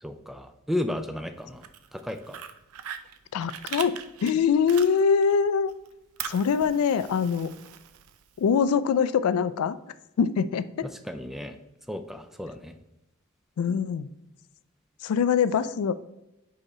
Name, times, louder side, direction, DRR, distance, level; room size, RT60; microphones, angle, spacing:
voice 1, 0.0-2.4 10.8-11.6 11.9-12.7, left 1 dB, ahead, 8 dB, 0.3 m, -34 dB
Fire, 1.4-5.4 5.7-8.5, right 9 dB, 85° right, 0.5 m, -41 dB
voice 2, 3.3-5.7 6.2-7.5 8.4-9.8 10.2-10.9 13.6-14.1 15.0-15.9, left 6 dB, 85° left, 15 dB, 0.3 m, -23 dB
5.4 x 4.8 x 4.2 m, 0.95 s
head